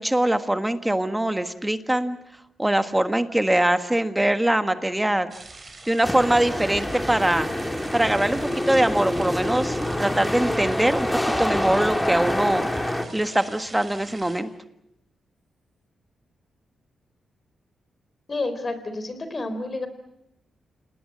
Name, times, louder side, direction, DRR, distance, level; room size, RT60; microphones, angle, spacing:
voice 1, 0.0-2.2 2.6-5.3 5.8-7.5 7.9-12.7 13.1-14.5, right 1 dB, 10° right, 9 dB, 1.5 m, -22 dB
sound 1, 5.3-14.4, right 3 dB, 35° right, 4.2 m, -44 dB
sound 2, 6.0-13.0, left 1 dB, 10° left, 2.4 m, -26 dB
voice 2, 18.3-19.9, left 2 dB, 35° left, 10 dB, 4.1 m, -29 dB
28.5 x 19.5 x 7.8 m, 0.80 s
cardioid pair, 85°, 0 cm